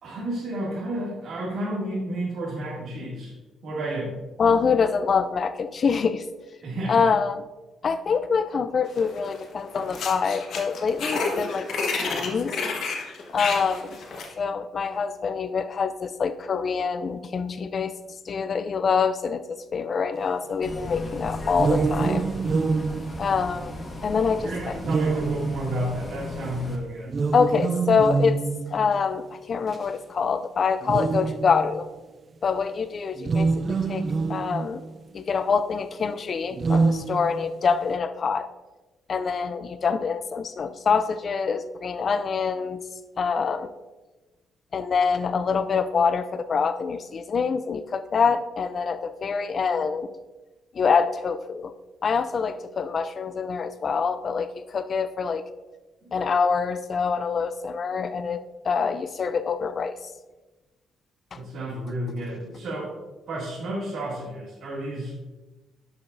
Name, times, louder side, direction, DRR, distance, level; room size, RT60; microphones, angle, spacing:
voice 1, 0.0-3.3 3.6-4.1 6.6-7.1 24.4-27.1 56.0-56.1 61.3-62.9 63.3-65.1, right 1 dB, 65° right, -7 dB, 2.3 m, -31 dB
voice 2, 4.4-6.3 6.9-7.4 7.8-11.7 12.0-12.5 13.3-14.0 14.4-17.9 18.3-22.3 23.2-23.7 24.0-24.7 27.3-28.4 28.7-31.9 32.4-34.8 35.1-38.5 39.1-42.8 43.2-43.7 44.7-50.1 50.7-51.7 52.0-55.4 56.1-60.0 61.3-61.4, left 5 dB, 45° left, 11 dB, 0.4 m, -25 dB
sound 1, 9.0-9.4 9.7-14.3, left 4 dB, 65° left, 1.2 m, -30 dB
Bus, 20.6-26.8, left 1 dB, 25° left, 1.4 m, -36 dB
sound 2, 21.5-24.0 24.9-26.1 27.1-28.9 29.7-29.8 30.8-31.9 33.2-35.0 36.5-37.7, right 4 dB, 40° right, 0.3 m, -26 dB
11.0 x 5.8 x 2.6 m, 1.2 s
cardioid pair, 90°, 0 cm